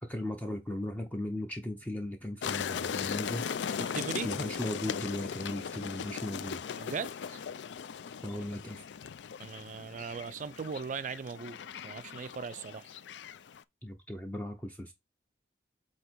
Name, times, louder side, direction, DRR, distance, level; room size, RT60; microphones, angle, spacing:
voice 1, 0.0-3.5 4.2-6.6 8.2-8.8 13.8-14.9, left 1 dB, 10° left, 0.7 m, -37 dB
sound 1, 2.4-13.6, left 7 dB, 85° left, 0.4 m, -38 dB
voice 2, 3.7-4.3 6.8-7.4 9.4-11.6 11.8-12.9, right 5 dB, 45° right, 0.4 m, -38 dB
8.1 x 2.9 x 4.5 m
head